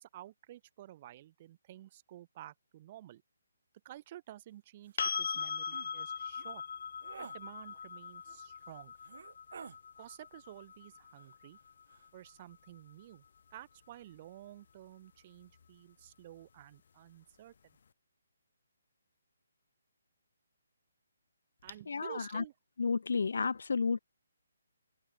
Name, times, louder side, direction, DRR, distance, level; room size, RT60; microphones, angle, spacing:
voice 1, 0.0-3.2 3.8-6.6 7.2-8.9 10.0-11.6 12.1-13.2 13.5-17.7 21.6-22.5, right 13 dB, 20° right, 6.0 m, -52 dB
sound 1, 4.9-5.0 5.3-5.5 5.7-5.9 6.4-6.5 7.0-7.4 8.3-8.4 9.0-9.8 11.1-11.6 11.9-12.1, right 6 dB, 40° right, 1.3 m, -50 dB
sound 2, 5.0-12.8 15.6-15.7, left 6 dB, 40° left, 2.0 m, -41 dB
voice 2, 21.9-22.4 22.8-24.0, left 5 dB, 55° left, 0.4 m, -32 dB
hypercardioid pair, 180°, 0 cm